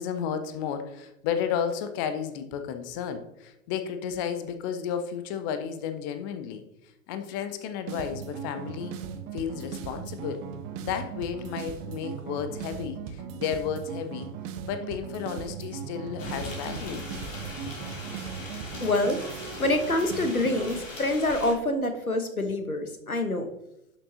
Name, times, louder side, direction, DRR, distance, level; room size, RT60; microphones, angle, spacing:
voice 1, 0.0-9.0 9.3-10.4 10.8-14.3 14.7-17.0 17.6-17.7 18.4-18.5 18.7-18.8, left 8 dB, 15° left, 9 dB, 0.4 m, -33 dB
sound 1, 7.9-20.8, right 8 dB, 30° right, 0.7 m, -38 dB
sound 2, 16.2-21.5, left 2 dB, 65° left, 3.1 m, -40 dB
voice 2, 18.8-19.2 19.6-23.5, left 2 dB, 90° left, 7 dB, 1.2 m, -26 dB
11.0 x 6.5 x 2.7 m, 0.88 s
figure-of-eight pair, 100°, 42 cm